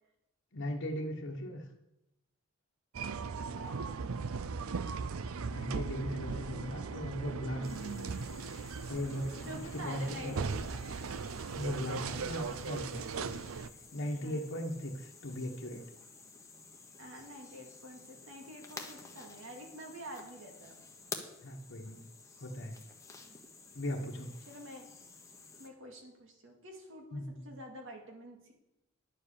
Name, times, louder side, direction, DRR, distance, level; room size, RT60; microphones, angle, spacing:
voice 1, 0.5-1.7 5.5-9.5 9.7-10.7 11.6-13.4 13.9-15.8 21.4-22.0 22.4-22.8 23.7-24.3 27.1-27.5, left 1 dB, 60° left, 1 dB, 1.2 m, -38 dB
sound 1, 2.9-13.7, right 5 dB, 85° right, 0.5 m, -38 dB
voice 2, 3.6-4.1 9.4-10.8 11.9-12.6 14.2-14.5 17.0-20.8 23.3-23.4 23.8-24.0 24.5-24.9 25.6-28.5, equal, 65° right, 1 dB, 2.4 m, -48 dB
sound 2, 7.6-25.7, left 4 dB, 15° left, 1.1 m, -52 dB
10.5 x 7.5 x 6.6 m, 0.88 s
head